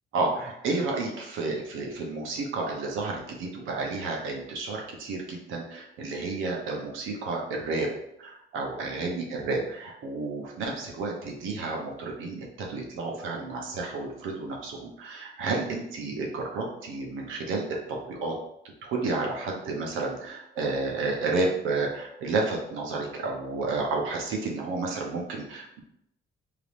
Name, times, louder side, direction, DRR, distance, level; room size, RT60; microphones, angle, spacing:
voice 1, 0.1-7.9 8.2-18.3 18.8-25.8, right 3 dB, 90° right, 0 dB, 0.8 m, -31 dB
3.3 x 2.8 x 2.5 m, 0.79 s
cardioid pair, 90°, 20 cm